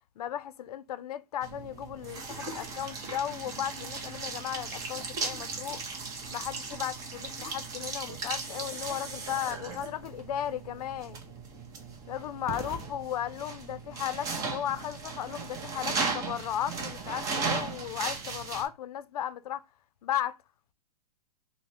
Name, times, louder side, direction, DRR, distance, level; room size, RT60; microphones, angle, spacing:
voice 1, 0.2-5.8 6.3-11.2 12.1-19.6 20.0-20.4, left 10 dB, 75° left, 0.4 m, -35 dB
sound 1, 1.4-18.7, right 4 dB, 20° right, 0.6 m, -37 dB
3.1 x 2.0 x 4.1 m
hypercardioid pair, 150°, 20 cm